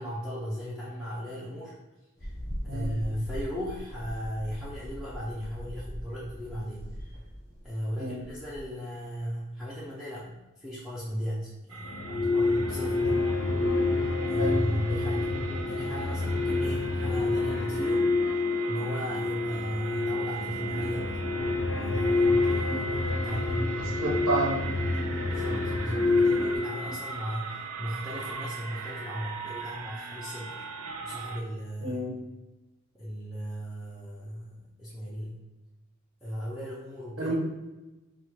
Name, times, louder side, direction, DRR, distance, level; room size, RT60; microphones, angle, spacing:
voice 1, 0.0-1.7 2.2-2.3 2.6-7.1 7.6-14.0 14.2-15.3 15.6-18.1 18.7-21.2 21.8-23.9 25.1-30.7 31.0-32.1 32.9-35.4 36.2-37.3, equal, ahead, -8 dB, 0.5 m, -36 dB
sound 1, 2.2-8.7, equal, 15° left, 1.1 m, -40 dB
sound 2, 11.7-31.4, right 5 dB, 90° right, 0.5 m, -39 dB
sound 3, 11.8-26.6, left 3 dB, 60° left, 0.5 m, -28 dB
voice 2, 23.9-24.6 25.0-25.2 31.8-32.1 37.2-37.3, right 2 dB, 70° right, -4 dB, 1.4 m, -30 dB
3.6 x 2.4 x 4.5 m, 1.1 s
head